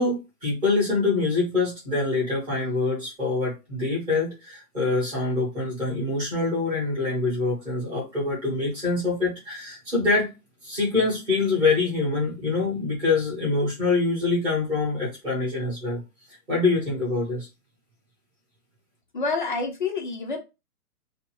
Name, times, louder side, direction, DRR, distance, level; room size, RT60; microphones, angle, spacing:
voice 1, 0.0-10.3 10.6-16.0 16.5-17.5, left 3 dB, 10° right, -5 dB, 0.8 m, -25 dB
voice 2, 19.1-20.4, left 4 dB, 35° left, 3 dB, 0.4 m, -27 dB
2.6 x 2.0 x 3.0 m, 0.26 s
hypercardioid pair, 160°, 46 cm